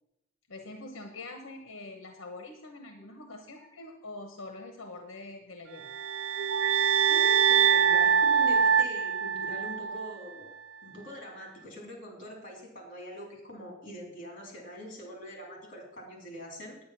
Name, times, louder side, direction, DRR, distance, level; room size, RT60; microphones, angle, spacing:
voice 1, 0.5-5.9, left 2 dB, 70° left, 4 dB, 1.0 m, -44 dB
sound 1, 5.8-10.1, right 7 dB, 75° right, 0.4 m, -24 dB
voice 2, 7.1-10.5 10.8-16.8, equal, 40° left, 0 dB, 3.5 m, -43 dB
9.6 x 9.1 x 5.9 m, 0.86 s
head